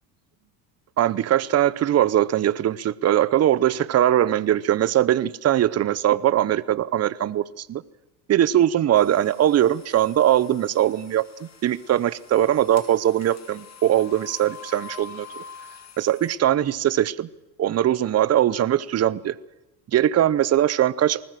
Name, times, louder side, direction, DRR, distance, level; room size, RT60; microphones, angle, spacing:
voice 1, 1.0-7.8 8.3-15.4 16.0-17.3 17.6-19.4 19.9-21.2, right 11 dB, 30° right, 19 dB, 0.8 m, -21 dB
sound 1, 8.9-16.4, left 6 dB, 30° left, 3.3 m, -45 dB
20.0 x 19.0 x 7.6 m, 0.96 s
supercardioid pair, 105°, 50 cm